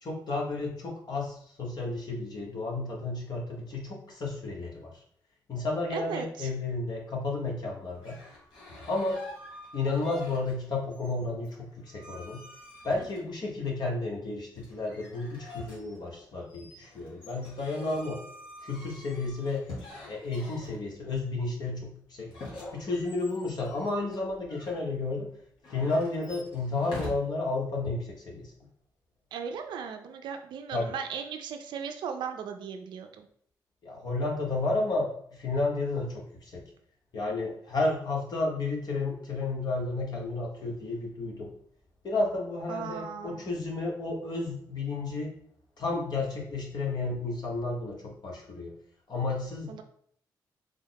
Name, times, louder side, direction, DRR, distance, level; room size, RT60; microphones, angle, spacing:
voice 1, 0.0-4.9 5.5-8.2 8.9-9.2 9.7-12.4 12.8-18.2 18.6-19.7 20.1-22.3 22.7-25.3 25.7-28.5 30.7-30.9 33.8-36.6 37.1-41.5 42.0-45.3 45.8-48.7 49.1-49.8, left 3 dB, 60° left, -1 dB, 1.1 m, -32 dB
voice 2, 5.9-6.5 29.3-33.3 42.7-43.4 49.7-49.8, right 6 dB, 80° right, 5 dB, 0.4 m, -37 dB
sound 1, 7.9-10.6 10.9-13.6 14.6-21.1 22.3-24.8 25.6-27.1, left 2 dB, 85° left, 1.3 m, -46 dB
3.5 x 2.0 x 3.9 m, 0.63 s
cardioid pair, 65°, 8 cm